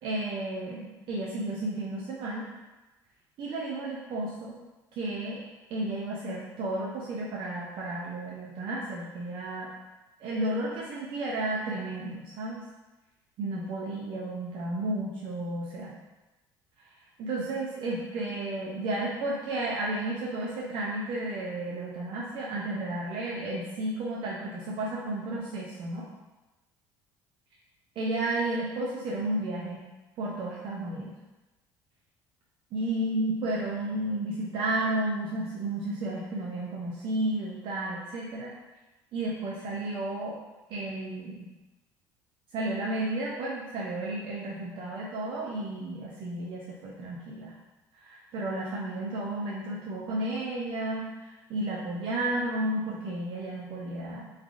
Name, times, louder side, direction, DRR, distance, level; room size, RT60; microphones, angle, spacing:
voice 1, 0.0-2.4 3.4-4.6 5.0-5.4 5.7-9.7 10.2-12.6 13.4-15.9 17.2-26.1 28.0-29.8 30.2-31.1 32.7-38.5 39.1-40.4 40.7-41.5 42.5-47.5 48.0-54.3, right 1 dB, 55° right, -4 dB, 0.5 m, -32 dB
3.2 x 2.3 x 2.5 m, 1.1 s
hypercardioid pair, 75°, 10 cm